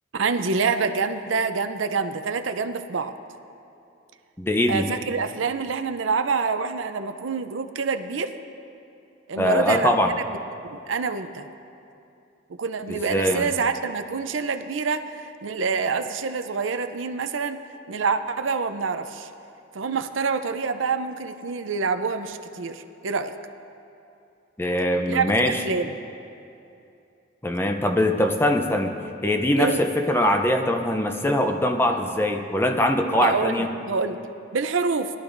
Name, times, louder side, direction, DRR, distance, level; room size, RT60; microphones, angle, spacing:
voice 1, 0.1-3.1 4.7-8.4 9.3-9.9 10.7-11.5 12.6-17.6 17.9-19.3 19.7-23.3 25.1-25.9 29.6-29.8 33.2-34.2 34.5-35.1, right 5 dB, 85° right, 8 dB, 0.6 m, -26 dB
voice 2, 4.4-4.9 9.4-10.1 12.9-13.5 24.6-25.6 27.4-29.0 29.2-33.7, left 1 dB, 10° left, 5 dB, 0.6 m, -22 dB
20.5 x 12.0 x 2.6 m, 2.7 s
head